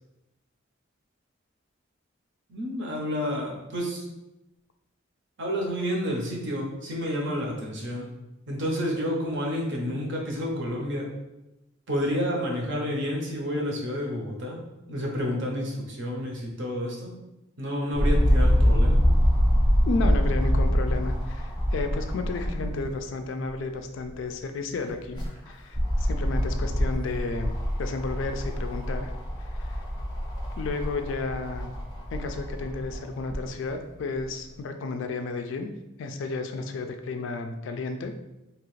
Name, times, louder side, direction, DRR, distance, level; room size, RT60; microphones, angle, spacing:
voice 1, 2.5-4.0 5.4-8.1 8.5-11.1 11.9-14.6 14.9-17.2 17.6-19.0, equal, 60° right, -1 dB, 0.7 m, -30 dB
sound 1, 17.9-23.0 23.4-23.5 24.9-33.4 34.2-34.3, equal, 20° left, 0.6 m, -25 dB
voice 2, 19.9-29.1 29.4-29.8 30.6-31.7 32.1-35.7 36.0-38.1, left 3 dB, 65° left, 7 dB, 0.3 m, -32 dB
2.9 x 2.4 x 3.1 m, 0.94 s
head